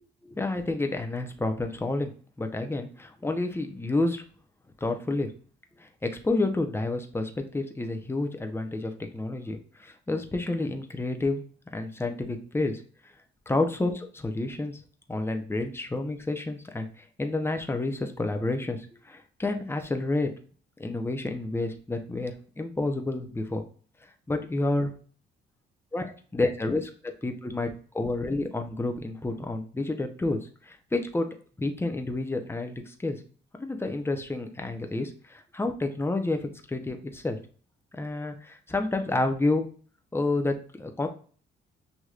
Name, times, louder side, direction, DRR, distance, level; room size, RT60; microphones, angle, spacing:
voice 1, 0.2-2.1 2.4-4.2 4.8-5.3 5.8-12.8 13.5-14.8 15.1-20.3 20.8-23.6 24.3-24.9 25.9-26.1 26.3-27.7 27.9-30.4 30.7-31.3 31.6-33.2 33.6-36.4 36.7-37.4 37.9-39.7 40.1-41.1, left 2 dB, 10° left, 5 dB, 0.8 m, -29 dB
6.6 x 2.9 x 2.4 m, 0.42 s
cardioid pair, 90°, 20 cm